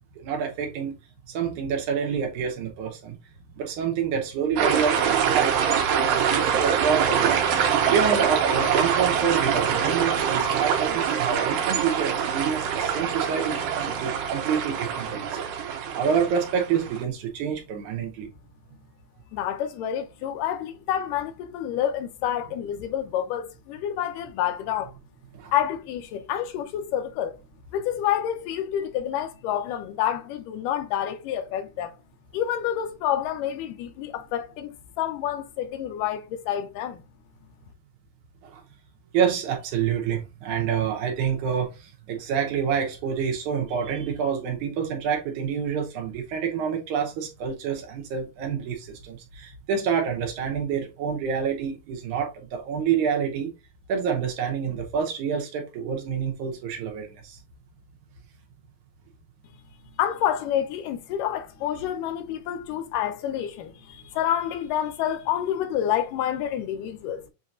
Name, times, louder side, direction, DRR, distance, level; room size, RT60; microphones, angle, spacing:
voice 1, 0.2-0.9 1.3-3.2 3.6-5.6 6.0-7.4 7.9-15.3 16.0-18.3 25.3-25.5 39.1-41.7 42.1-53.5 53.9-57.4, right 7 dB, 70° right, 2.3 m, -27 dB
sound 1, 4.6-17.0, right 8 dB, 90° right, 2.4 m, -24 dB
voice 2, 19.3-24.9 25.5-27.4 27.7-32.0 32.3-37.0 60.0-67.3, left 10 dB, 85° left, 2.3 m, -28 dB
7.2 x 2.8 x 2.5 m
omnidirectional pair, 3.8 m